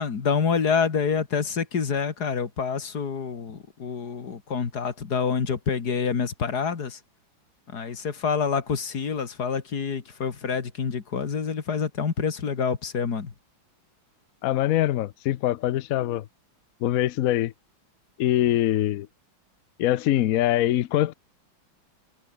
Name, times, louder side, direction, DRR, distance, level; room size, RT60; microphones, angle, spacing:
voice 1, 0.0-7.0 7.7-13.3, left 6 dB, 55° left, 2.5 m, -27 dB
voice 2, 14.4-16.2 16.8-17.5 18.2-19.1 19.8-21.1, left 13 dB, 70° left, 0.8 m, -23 dB
omnidirectional pair, 2.2 m